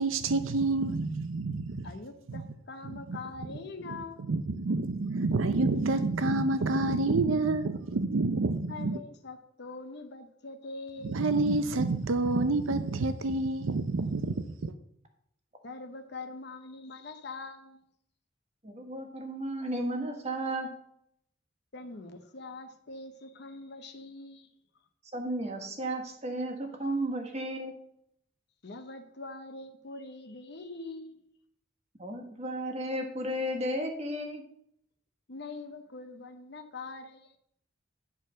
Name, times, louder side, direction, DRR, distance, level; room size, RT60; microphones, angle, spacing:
voice 1, 0.0-1.9 2.3-2.4 3.1-3.2 4.3-9.0 11.0-14.7, right 3 dB, 90° right, 0.6 m, -28 dB
voice 2, 1.8-4.2 8.7-11.3 15.6-17.8 21.7-24.5 28.6-31.2 35.3-37.4, left 3 dB, 60° left, 0.9 m, -43 dB
voice 3, 18.6-20.7 25.1-27.7 32.0-34.4, right 1 dB, 35° right, 1.5 m, -33 dB
11.0 x 4.5 x 6.2 m
head